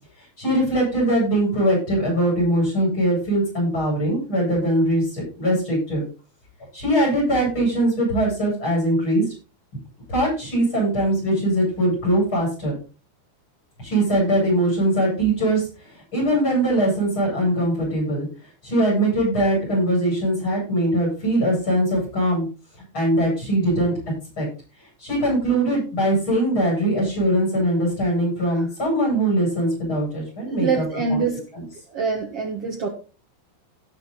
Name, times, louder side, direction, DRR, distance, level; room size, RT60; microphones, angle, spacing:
voice 1, 0.2-6.0 6.7-9.2 10.1-12.7 13.8-18.3 18.6-22.5 22.9-23.9 24.4-24.5 25.0-30.8 31.1-31.2, right 1 dB, 25° left, -4 dB, 8.7 m, -21 dB
voice 2, 30.4-31.4 31.9-32.9, right 5 dB, 70° right, 2 dB, 1.4 m, -25 dB
17.0 x 6.0 x 4.1 m, 0.34 s
omnidirectional pair, 5.0 m